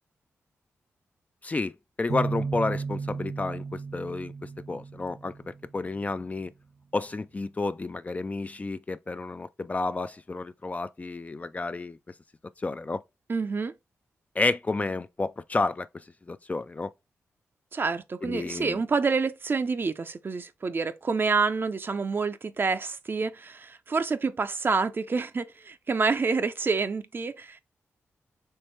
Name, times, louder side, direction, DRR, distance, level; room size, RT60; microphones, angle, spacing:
voice 1, 1.4-1.7 2.0-6.5 6.9-12.0 12.6-13.0 14.4-16.9 18.2-18.8, left 3 dB, 30° left, 0.3 m, -31 dB
sound 1, 2.1-5.8, right 4 dB, 70° right, 1.0 m, -34 dB
voice 2, 13.3-13.7 17.7-27.6, right 4 dB, 45° right, 0.5 m, -28 dB
4.5 x 3.2 x 3.2 m
cardioid pair, 65°, 5 cm